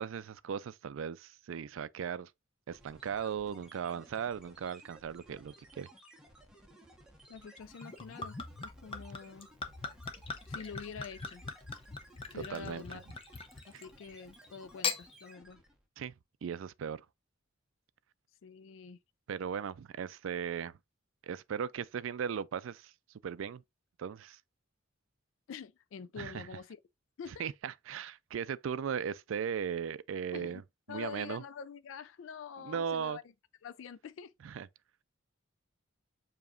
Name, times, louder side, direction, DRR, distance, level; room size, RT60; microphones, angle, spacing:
voice 1, 0.0-2.3 2.7-5.9 12.3-12.8 13.7-13.8 16.0-16.1 16.4-17.0 19.3-20.7 21.2-22.9 23.2-23.6 24.0-24.4 26.2-26.5 27.4-30.6 30.9-31.4 32.6-33.2 34.4-34.7, right 7 dB, 70° right, 0.4 m, -37 dB
sound 1, 2.7-15.9, right 1 dB, 5° right, 1.1 m, -58 dB
voice 2, 7.3-8.4 8.6-9.5 10.5-11.4 12.3-13.0 13.7-15.6 18.4-19.0 25.5-26.8 27.2-27.5 30.3-30.6 30.9-33.2 33.6-34.3, left 6 dB, 70° left, 0.3 m, -46 dB
Gurgling / Chink clink / Liquid, 7.8-14.0 14.6-15.0, left 4 dB, 25° left, 0.6 m, -40 dB
7.0 x 2.9 x 2.4 m
head